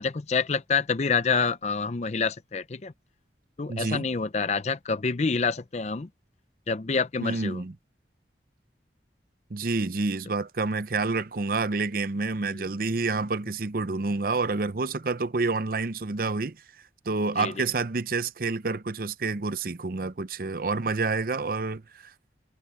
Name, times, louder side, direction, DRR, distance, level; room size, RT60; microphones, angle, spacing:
voice 1, 0.0-2.9 3.6-6.1 6.7-7.6 12.5-12.6 17.4-17.5, left 5 dB, 40° left, 0.5 m, -27 dB
voice 2, 3.7-4.0 7.2-7.7 9.5-16.6 17.1-21.8, right 3 dB, 50° right, 0.7 m, -28 dB
head